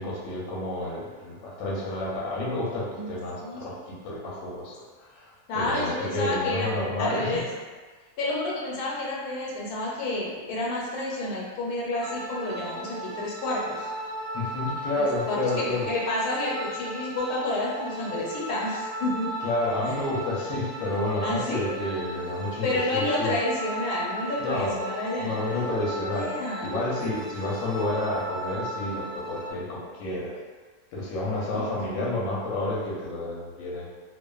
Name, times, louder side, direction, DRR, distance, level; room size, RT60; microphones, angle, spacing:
voice 1, 0.0-7.4 14.3-15.9 19.4-23.4 24.4-24.8 25.2-26.3 26.6-30.3 30.9-33.9, left 2 dB, 65° left, -5 dB, 0.9 m, -30 dB
voice 2, 5.5-6.7 7.0-7.5 8.2-13.9 14.9-19.4 21.2-21.8 22.6-25.7 26.1-26.7 31.5-31.7, left 2 dB, 90° left, -4 dB, 1.1 m, -30 dB
sound 1, 12.0-29.5, right 1 dB, 75° right, 0.5 m, -36 dB
2.4 x 2.4 x 2.2 m, 1.4 s
omnidirectional pair, 1.6 m